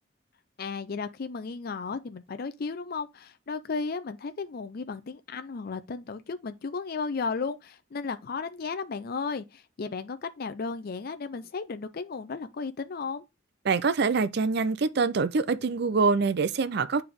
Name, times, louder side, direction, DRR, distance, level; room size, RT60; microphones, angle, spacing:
voice 1, 0.6-13.2, left 4 dB, 55° left, 0.5 m, -34 dB
voice 2, 13.7-17.0, right 4 dB, 60° right, 0.5 m, -25 dB
9.0 x 3.4 x 3.5 m
head